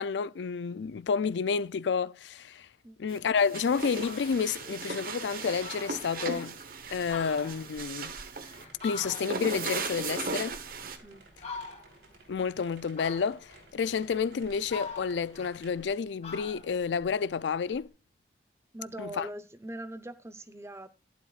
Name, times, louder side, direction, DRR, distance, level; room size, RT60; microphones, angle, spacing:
voice 1, 0.0-2.7 3.0-6.6 6.9-8.2 8.8-10.6 12.3-17.9 19.0-19.3, left 6 dB, 85° left, 0.4 m, -30 dB
sound 1, 3.1-11.0, right 4 dB, 55° right, 1.1 m, -37 dB
sound 2, 3.5-15.9, right 2 dB, 80° right, 3.7 m, -56 dB
Fowl, 4.0-4.4 4.9-5.0 5.3-5.4 5.6-6.5 6.9-9.6 9.9-10.9 11.4-12.1 13.0-13.6 14.2-15.9 16.2-17.8, left 4 dB, 35° left, 2.4 m, -44 dB
voice 2, 18.7-20.9, right 1 dB, 15° right, 0.7 m, -41 dB
12.0 x 11.0 x 2.4 m
head